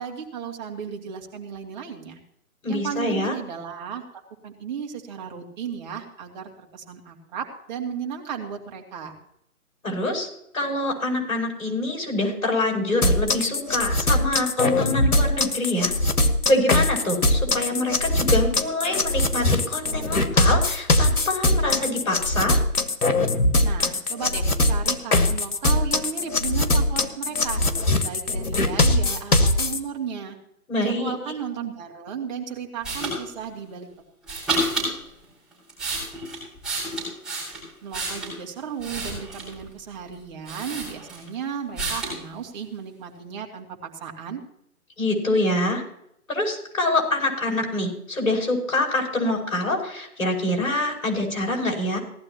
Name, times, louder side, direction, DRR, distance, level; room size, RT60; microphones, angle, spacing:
voice 1, 0.0-2.2 2.7-9.2 23.6-27.6 28.0-30.4 30.8-33.9 37.8-44.4, right 7 dB, 30° right, 1 dB, 2.6 m, -34 dB
voice 2, 2.6-3.3 9.8-10.3 10.5-15.9 16.5-22.6 30.7-31.1 45.0-45.8 46.3-52.0, left 2 dB, 60° left, 0 dB, 6.3 m, -25 dB
sound 1, 13.0-29.8, left 2 dB, 80° left, 1.6 m, -21 dB
sound 2, 32.8-33.2 34.2-34.9 35.5-38.4 38.8-39.6 40.1-40.2 40.5-41.3 41.8-42.2, right 2 dB, ahead, 6.3 m, -29 dB
18.0 x 12.5 x 3.0 m, 0.74 s
figure-of-eight pair, 145°, 44 cm